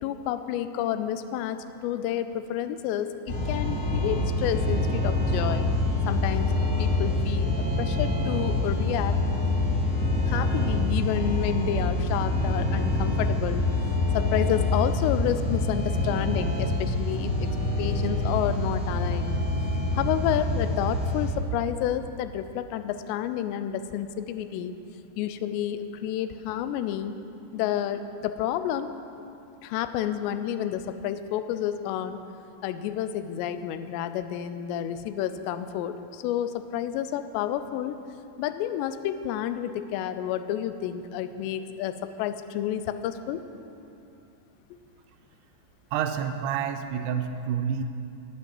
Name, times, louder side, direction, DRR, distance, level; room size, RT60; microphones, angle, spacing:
voice 1, 0.0-5.7 6.1-6.5 6.8-9.2 10.3-13.6 14.1-17.5 17.8-19.3 19.9-24.7 25.2-27.1 27.5-28.9 29.6-32.2 32.6-38.0 38.4-43.4, left 10 dB, 90° left, 11 dB, 2.8 m, -30 dB
sound 1, 3.3-21.3, left 2 dB, 30° left, 1.4 m, -26 dB
voice 2, 45.9-47.8, right 8 dB, 85° right, 7 dB, 2.5 m, -28 dB
9.6 x 8.4 x 7.6 m, 2.7 s
omnidirectional pair, 4.9 m